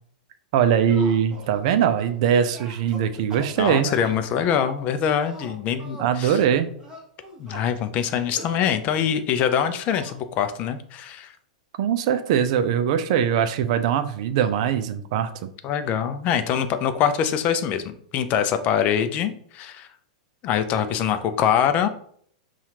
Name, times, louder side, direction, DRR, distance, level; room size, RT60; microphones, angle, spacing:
sound 1, 0.5-2.2 2.5-4.5 5.2-6.2 6.8-7.7 8.3-8.7 9.6-10.2, right 2 dB, 20° right, 1.0 m, -41 dB
voice 1, 0.5-3.9 6.0-6.7 11.8-15.3, right 8 dB, 55° right, 10 dB, 0.4 m, -21 dB
voice 2, 3.6-6.4 7.4-11.3 15.6-19.9 20.4-21.9, left 8 dB, 35° left, 9 dB, 0.4 m, -24 dB
5.6 x 2.4 x 2.8 m, 0.62 s
hypercardioid pair, 105°, 4 cm